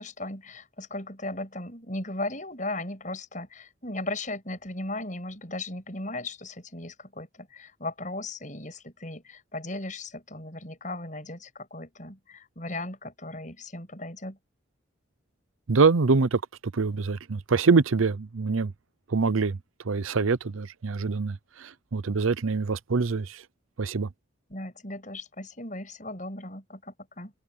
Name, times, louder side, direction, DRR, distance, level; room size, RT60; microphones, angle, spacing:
voice 1, 0.0-14.4 24.5-27.3, left 2 dB, 40° left, 7.8 m, -37 dB
voice 2, 15.7-16.4 16.7-18.7 19.1-19.6 19.8-23.4 23.8-24.1, right 4 dB, 90° right, 0.7 m, -24 dB
head